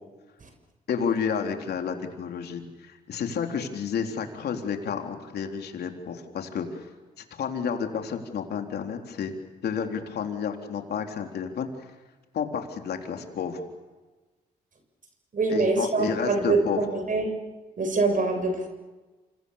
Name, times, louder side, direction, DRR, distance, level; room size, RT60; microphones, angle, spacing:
voice 1, 0.9-6.9 7.2-9.3 9.6-11.9 12.3-13.6 15.5-16.8, left 7 dB, 70° left, 4 dB, 3.6 m, -31 dB
voice 2, 15.3-17.3 17.8-18.7, right 3 dB, 50° right, 5 dB, 7.0 m, -24 dB
27.5 x 27.5 x 7.2 m, 1.2 s
hypercardioid pair, 45°, 17 cm